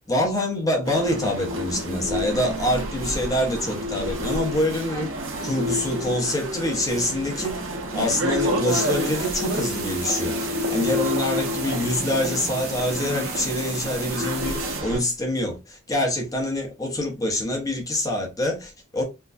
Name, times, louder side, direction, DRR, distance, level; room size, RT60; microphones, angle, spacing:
voice 1, 0.1-5.1 5.4-7.6 7.9-19.0, left 1 dB, 15° left, 0.9 m, -25 dB
sound 1, 0.8-15.0, equal, 70° right, 1.0 m, -29 dB
sound 2, 8.7-14.8, right 5 dB, 45° right, 1.3 m, -36 dB
4.6 x 2.2 x 2.5 m
head